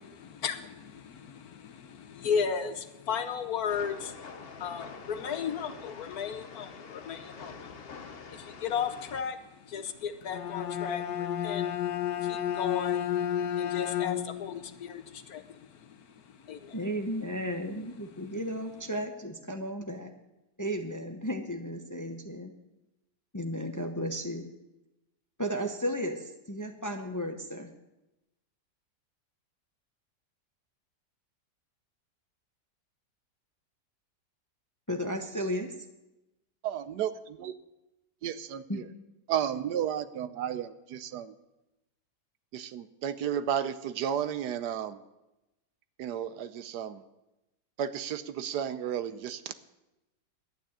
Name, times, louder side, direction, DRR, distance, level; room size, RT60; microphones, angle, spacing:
voice 1, 0.2-16.8 18.1-18.4, left 7 dB, 65° left, 9 dB, 1.2 m, -36 dB
Train, 3.7-9.2, left 5 dB, 45° left, 0.9 m, -46 dB
Bowed string instrument, 10.2-14.5, left 10 dB, 85° left, 1.4 m, -31 dB
voice 2, 16.7-20.1 20.6-22.5 23.3-24.4 25.4-27.7 34.9-35.7 38.7-38.8, equal, 15° left, 5 dB, 0.6 m, -34 dB
voice 3, 36.6-37.5 38.2-38.8 39.3-41.3 42.5-45.0 46.0-47.0 47.8-49.5, right 9 dB, 70° right, 13 dB, 1.2 m, -33 dB
11.5 x 9.2 x 8.5 m, 0.98 s
omnidirectional pair, 1.9 m